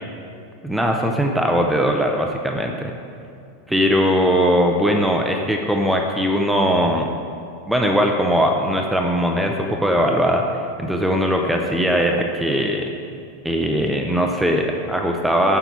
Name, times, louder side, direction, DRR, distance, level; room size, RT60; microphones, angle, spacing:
voice 1, 0.6-2.9 3.7-7.1 7.7-12.9 13.4-15.6, equal, ahead, 2 dB, 0.4 m, -20 dB
7.9 x 4.7 x 5.9 m, 2.4 s
supercardioid pair, 175°, 0 cm